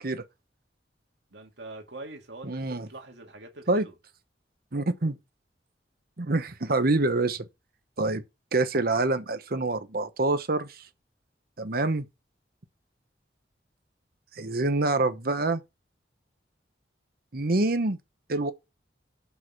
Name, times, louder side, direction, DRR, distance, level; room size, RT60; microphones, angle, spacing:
voice 1, 1.3-3.9, right 2 dB, 80° right, 2.2 m, -44 dB
voice 2, 2.4-2.9 3.7-3.8 4.7-5.2 6.2-7.4 8.0-8.2 8.5-10.8 11.6-12.1 14.4-15.6 17.3-18.0 18.3-18.5, right 2 dB, 55° right, 1.0 m, -26 dB
6.2 x 5.6 x 5.9 m
head